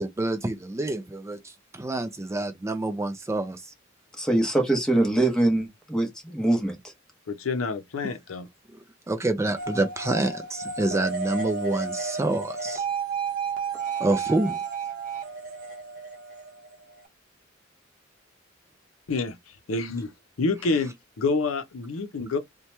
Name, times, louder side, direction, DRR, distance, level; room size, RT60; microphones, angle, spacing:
voice 1, 0.0-1.4 1.7-3.6 9.1-12.8 14.0-14.6, right 2 dB, 15° right, 0.3 m, -27 dB
voice 2, 4.2-6.8, right 1 dB, 5° left, 0.8 m, -23 dB
voice 3, 7.3-8.5 19.1-19.4 19.7-20.1 20.4-22.4, left 3 dB, 80° left, 0.6 m, -27 dB
sound 1, 9.6-17.1, right 5 dB, 45° right, 0.8 m, -32 dB
2.8 x 2.2 x 3.1 m
head